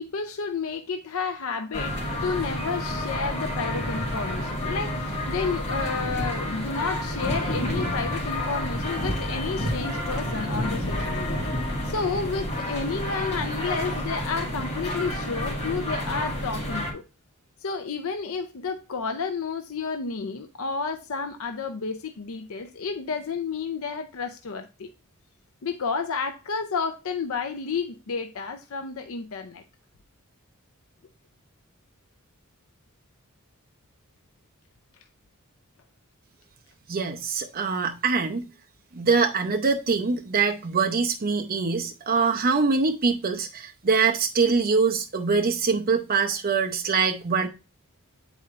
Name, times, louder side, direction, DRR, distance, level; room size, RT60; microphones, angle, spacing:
voice 1, 0.0-17.0 17.6-24.9 25.6-29.6, left 4 dB, 70° left, 0.6 m, -31 dB
sound 1, 1.7-16.9, left 1 dB, 30° left, 2.0 m, -29 dB
voice 2, 36.9-38.4 38.9-47.5, right 5 dB, 45° right, 0.6 m, -24 dB
9.0 x 4.2 x 2.5 m
head